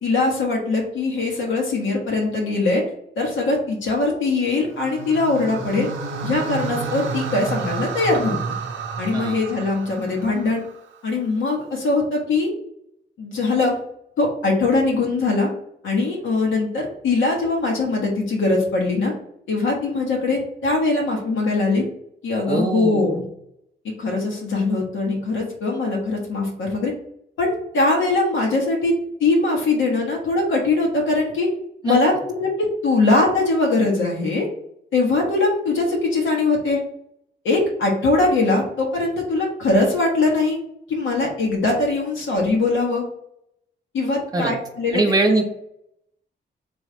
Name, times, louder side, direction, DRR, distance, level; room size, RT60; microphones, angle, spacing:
voice 1, 0.0-2.8 3.2-5.9 6.2-8.4 9.0-10.6 11.0-12.5 13.2-13.8 14.2-15.5 15.8-19.1 19.5-21.8 22.2-23.2 24.0-26.9 27.4-28.9 29.2-31.5 31.8-32.1 32.4-34.5 34.9-36.8 37.4-40.6 40.9-43.0 43.9-45.0 45.3-45.4, left 3 dB, 90° left, -1 dB, 1.3 m, -21 dB
sound 1, 4.7-11.0, right 4 dB, 85° right, 0.5 m, -30 dB
voice 2, 22.5-23.2 31.8-32.0 44.3-44.5 44.9-45.4, right 2 dB, 20° right, 2 dB, 1.0 m, -22 dB
3.4 x 3.1 x 4.5 m, 0.73 s
cardioid pair, 75°, 19 cm